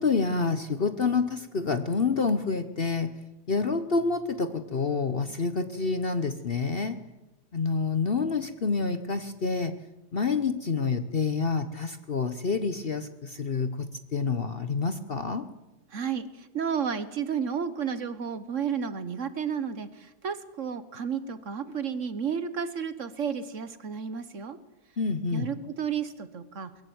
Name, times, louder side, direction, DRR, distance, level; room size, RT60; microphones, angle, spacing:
voice 1, 0.0-3.1 3.5-7.0 7.5-9.7 10.1-15.4 25.0-25.5, left 4 dB, 45° left, 10 dB, 0.9 m, -28 dB
voice 2, 15.9-24.6 25.3-26.8, right 7 dB, 50° right, 13 dB, 1.3 m, -32 dB
22.0 x 14.0 x 9.4 m, 1.0 s
omnidirectional pair, 1.8 m